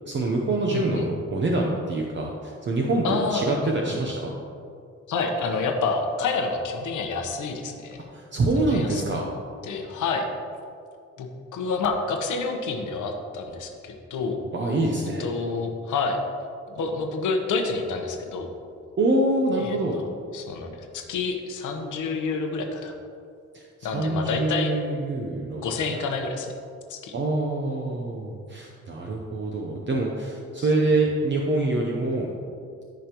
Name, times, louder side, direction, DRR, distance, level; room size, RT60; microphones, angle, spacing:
voice 1, 0.1-3.1 3.3-4.4 8.1-9.3 14.5-15.3 19.0-20.0 23.5-25.6 27.1-32.3, right 2 dB, 40° right, -1 dB, 0.8 m, -25 dB
voice 2, 0.7-1.0 3.0-4.0 5.1-8.0 8.6-9.2 9.6-10.3 11.2-11.3 11.5-14.4 15.2-16.2 16.7-18.5 19.6-20.1 20.3-22.9 23.8-24.7 25.6-26.5 26.9-27.1 30.6-30.7, left 4 dB, 90° left, 3 dB, 1.1 m, -28 dB
14.0 x 5.1 x 3.0 m, 2.4 s
cardioid pair, 135°, 29 cm